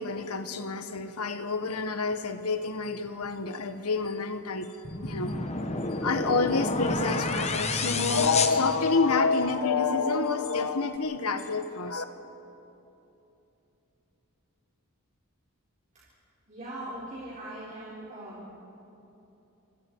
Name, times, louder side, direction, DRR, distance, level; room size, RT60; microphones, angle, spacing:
voice 1, 0.0-4.8 5.0-5.4 6.0-12.0, left 4 dB, 85° left, 9 dB, 1.4 m, -28 dB
sound 1, 4.8-9.4, left 3 dB, 30° left, 1.2 m, -30 dB
voice 2, 16.5-18.6, right 1 dB, 35° right, -7 dB, 4.3 m, -40 dB
27.5 x 25.5 x 4.7 m, 2.9 s
head